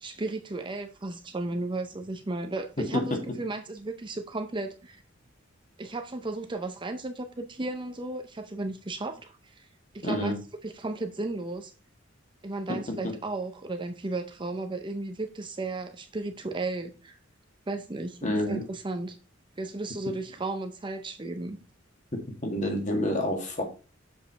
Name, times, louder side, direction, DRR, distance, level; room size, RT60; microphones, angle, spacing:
voice 1, 0.0-5.0 5.8-9.7 9.9-10.3 10.6-11.7 12.4-17.2 17.7-18.2 18.5-19.2 19.6-21.6, right 2 dB, 25° right, 0.7 m, -34 dB
voice 2, 2.8-3.2 10.0-10.3 12.7-13.1 18.2-18.6 22.4-23.6, left 1 dB, 40° left, 1.9 m, -28 dB
7.2 x 5.6 x 4.2 m
head